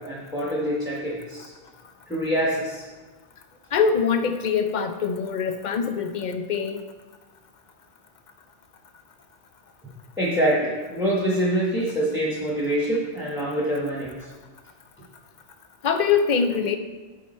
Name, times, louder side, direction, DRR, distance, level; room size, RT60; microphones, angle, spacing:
voice 1, 0.0-1.5 2.1-2.8 10.2-14.1, right 1 dB, 5° right, -5 dB, 1.1 m, -25 dB
voice 2, 3.7-6.8 15.8-16.7, left 6 dB, 55° left, 8 dB, 0.5 m, -23 dB
7.3 x 5.7 x 4.3 m, 1.3 s
omnidirectional pair, 1.2 m